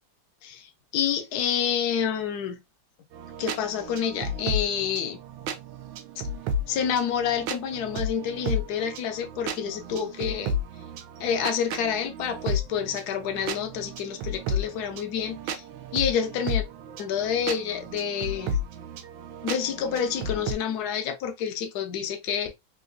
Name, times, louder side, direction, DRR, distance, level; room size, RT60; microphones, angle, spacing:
voice 1, 0.4-2.6 3.4-5.2 6.2-6.3 6.7-10.6 11.2-15.6 15.9-16.6 17.0-18.6 19.4-22.5, left 8 dB, 65° left, 1.0 m, -28 dB
sound 1, 3.1-20.5, equal, 80° right, 1.3 m, -33 dB
3.8 x 2.6 x 2.5 m
omnidirectional pair, 2.2 m